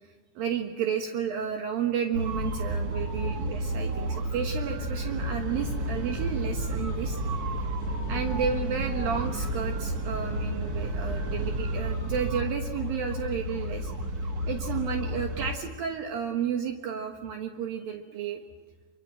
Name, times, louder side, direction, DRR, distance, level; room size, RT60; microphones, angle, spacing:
voice 1, 0.4-7.2 8.1-13.9 14.5-18.4, right 7 dB, 70° right, 4 dB, 3.0 m, -32 dB
sound 1, 2.1-15.5, right 1 dB, 45° right, 1.2 m, -31 dB
26.0 x 24.5 x 7.7 m, 1.4 s
omnidirectional pair, 4.6 m